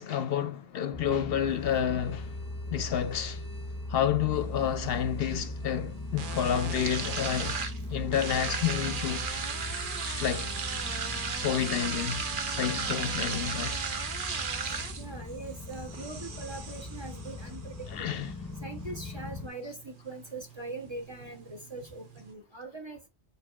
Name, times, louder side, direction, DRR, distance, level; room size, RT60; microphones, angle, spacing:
voice 1, 0.0-2.4 2.7-3.5 3.9-7.6 7.9-10.5 11.4-12.2 12.5-13.8 17.9-18.3, left 9 dB, 65° left, 0.7 m, -30 dB
sound 1, 0.9-19.5, left 2 dB, 20° left, 0.7 m, -39 dB
sound 2, 1.5-10.8, right 2 dB, 85° right, 2.9 m, -56 dB
sound 3, 4.3-22.3, right 5 dB, 55° right, 0.9 m, -37 dB
voice 2, 14.7-18.1 18.6-23.1, right 3 dB, 30° right, 0.7 m, -42 dB
4.9 x 4.6 x 2.3 m
omnidirectional pair, 1.1 m